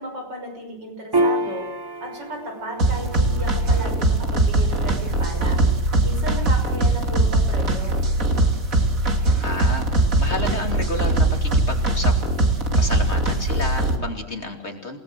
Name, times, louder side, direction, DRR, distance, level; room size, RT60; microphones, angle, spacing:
voice 1, 0.0-1.7 2.0-5.6 6.0-8.0, right 1 dB, 85° right, 2 dB, 6.7 m, -34 dB
Piano, 1.1-8.0, right 1 dB, 25° right, 0.5 m, -30 dB
sound 1, 2.8-14.0, right 2 dB, 50° right, 3.0 m, -21 dB
voice 2, 9.4-12.1 12.8-15.0, left 2 dB, 40° left, 4 dB, 3.1 m, -30 dB
28.5 x 18.5 x 7.9 m, 0.84 s
omnidirectional pair, 1.9 m